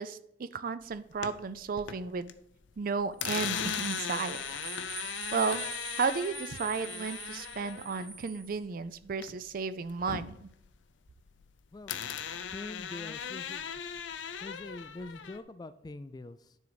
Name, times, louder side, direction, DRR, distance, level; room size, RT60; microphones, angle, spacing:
voice 1, 0.0-2.3 2.8-4.4 4.9-5.7 6.0-10.5, right 5 dB, 50° right, 15 dB, 0.4 m, -33 dB
sound 1, 0.9-2.3 2.6-9.6 9.9-11.5 11.9-15.4, left 8 dB, 75° left, 0.5 m, -38 dB
sound 2, 3.2-8.6, right 5 dB, 25° right, 1.9 m, -43 dB
voice 2, 11.7-12.1 12.5-14.0 14.4-16.6, left 2 dB, 20° left, 13 dB, 0.3 m, -44 dB
9.9 x 4.0 x 4.8 m, 0.78 s
head